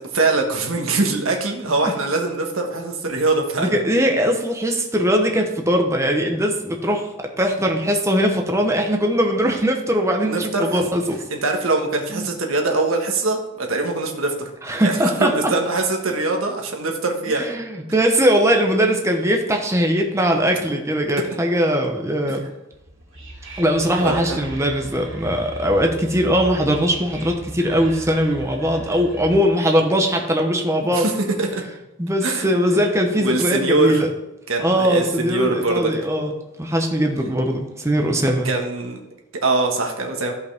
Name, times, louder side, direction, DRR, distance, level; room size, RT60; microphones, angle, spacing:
voice 1, 0.1-3.8 10.2-10.8 11.3-14.5 14.8-17.5 23.5-23.6 24.0-24.4 30.9-31.1 31.4-31.6 32.2-32.5 33.1-34.0 34.5-35.9 38.4-39.0 39.4-40.3, right 3 dB, 85° right, 2 dB, 1.5 m, -22 dB
voice 2, 3.6-11.2 12.1-12.3 14.6-15.5 17.3-22.4 23.6-31.1 32.0-34.1 34.6-36.3 36.6-38.5, equal, 15° right, 2 dB, 0.9 m, -20 dB
Whispering, 22.7-29.6, right 1 dB, 70° right, 3.4 m, -37 dB
14.5 x 5.4 x 3.5 m, 0.93 s
head